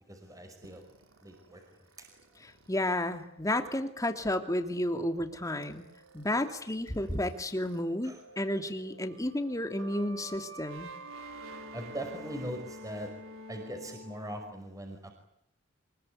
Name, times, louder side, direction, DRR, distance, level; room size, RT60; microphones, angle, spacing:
voice 1, 0.1-0.8 1.2-1.6 2.0-2.1 8.0-8.2 11.7-13.1 13.5-15.1, right 1 dB, 15° right, 4 dB, 5.3 m, -40 dB
sound 1, 0.6-7.8 8.1-14.5, right 1 dB, 85° right, 4.3 m, -50 dB
voice 2, 2.4-5.8 6.1-10.9, left 1 dB, 15° left, 7 dB, 2.7 m, -32 dB
25.5 x 22.0 x 9.8 m, 0.72 s
head